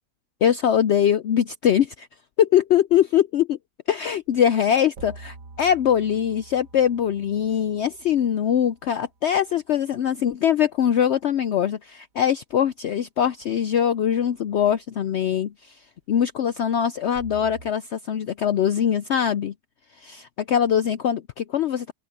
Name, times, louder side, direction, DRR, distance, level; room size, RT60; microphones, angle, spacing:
voice 1, 0.4-2.1 2.4-3.6 3.9-15.7 16.1-19.5 20.0-21.9, left 9 dB, 70° left, 0.6 m, -22 dB
sound 1, 4.2-4.3 5.0-9.4 14.5-14.8 17.1-17.7, right 3 dB, 60° right, 1.8 m, -46 dB
open air
omnidirectional pair, 1.7 m